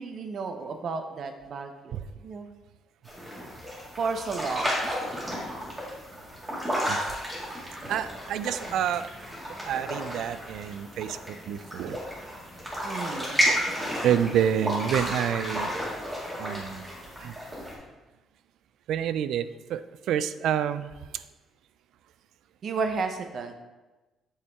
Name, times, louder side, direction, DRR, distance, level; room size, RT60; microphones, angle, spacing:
voice 1, 0.0-2.5 4.0-5.0 8.6-8.8 12.8-13.4 22.6-23.5, right 4 dB, 45° right, 6 dB, 0.7 m, -33 dB
sound 1, 3.0-17.7, equal, 15° right, 1.9 m, -32 dB
voice 2, 7.9-9.1 9.7-11.2 11.5-12.0 13.5-13.7 14.0-15.7 16.4-16.9 17.2-17.3 18.9-20.9, right 9 dB, 70° right, 14 dB, 0.3 m, -28 dB
8.0 x 5.5 x 3.5 m, 1.1 s
cardioid pair, 165°, 0 cm